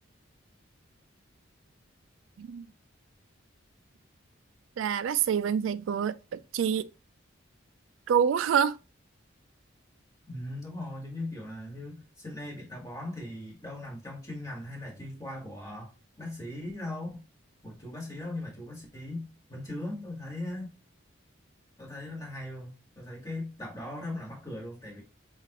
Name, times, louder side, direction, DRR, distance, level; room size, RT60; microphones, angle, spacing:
voice 1, 4.8-6.9 8.1-8.8, right 8 dB, 75° right, 0.3 m, -27 dB
voice 2, 10.3-15.9 16.2-17.2 17.6-20.7 21.8-25.0, left 1 dB, 15° left, 1.7 m, -39 dB
5.8 x 2.4 x 2.9 m
head